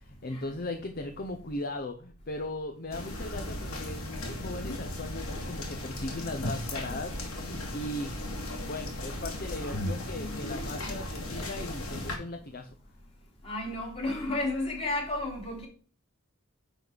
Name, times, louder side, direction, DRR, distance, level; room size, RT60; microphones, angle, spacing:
voice 1, 0.0-8.2 8.7-12.7, left 1 dB, 45° left, 0.8 m, -38 dB
sound 1, 2.9-12.2, left 1 dB, 80° left, 2.7 m, -36 dB
voice 2, 13.4-15.7, left 2 dB, 25° left, 2.7 m, -32 dB
10.0 x 4.1 x 4.6 m
head